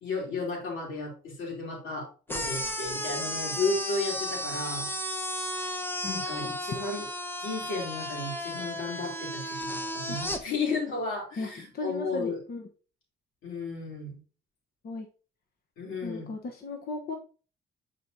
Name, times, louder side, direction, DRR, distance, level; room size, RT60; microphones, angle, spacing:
voice 1, 0.0-4.9 6.0-7.1 7.4-12.4 13.4-14.2 15.8-16.3, left 3 dB, 85° left, -1 dB, 3.2 m, -33 dB
sound 1, 2.3-10.4, left 1 dB, 10° left, 1.0 m, -34 dB
voice 2, 11.4-12.7 14.8-15.1 16.0-17.2, left 3 dB, 50° left, 3 dB, 1.0 m, -36 dB
9.0 x 4.6 x 2.7 m, 0.37 s
cardioid pair, 90°, 20 cm